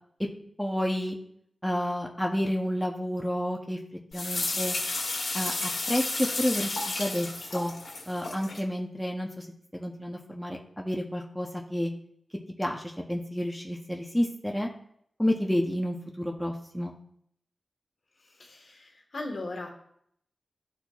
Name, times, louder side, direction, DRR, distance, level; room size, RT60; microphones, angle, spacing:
voice 1, 0.6-1.2 1.6-3.8 4.1-4.8 5.3-7.7 8.1-9.5 9.7-11.9 12.6-14.7 15.2-16.9, equal, ahead, 0 dB, 0.7 m, -30 dB
sound 1, 4.1-8.6, left 2 dB, 70° left, 1.7 m, -32 dB
voice 2, 18.2-19.7, left 2 dB, 55° left, 2 dB, 1.3 m, -38 dB
12.5 x 4.2 x 2.3 m, 0.70 s
wide cardioid pair, 130°, 0 cm